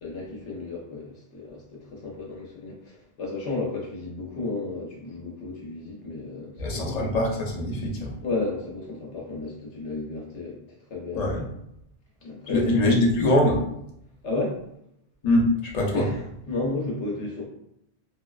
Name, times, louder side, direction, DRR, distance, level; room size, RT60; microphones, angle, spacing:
voice 1, 0.0-7.1 8.2-10.6 10.9-11.3 12.2-12.8 14.2-14.6 15.9-17.5, left 3 dB, 80° left, -2 dB, 1.1 m, -33 dB
voice 2, 6.6-8.1 11.1-11.4 12.5-13.6 15.2-16.1, left 1 dB, 45° left, -2 dB, 0.6 m, -23 dB
2.5 x 2.3 x 2.2 m, 0.78 s
omnidirectional pair, 1.2 m